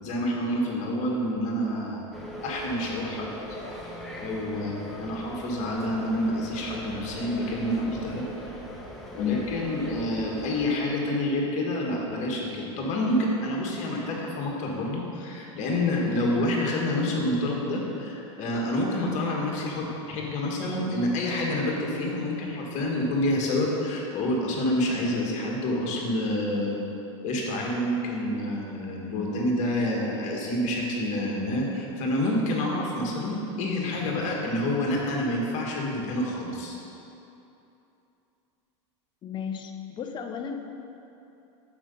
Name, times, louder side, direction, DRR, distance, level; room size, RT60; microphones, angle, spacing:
voice 1, 0.0-2.1 2.4-3.3 4.2-4.7 5.0-8.3 9.1-26.8 27.2-36.7, left 1 dB, 50° left, -1 dB, 1.6 m, -28 dB
sound 1, 2.1-10.7, equal, ahead, 1.0 m, -40 dB
voice 2, 9.2-9.5 16.0-16.2 39.2-40.6, left 9 dB, 30° left, 5 dB, 0.6 m, -33 dB
6.1 x 5.2 x 5.4 m, 2.9 s
hypercardioid pair, 105°, 16 cm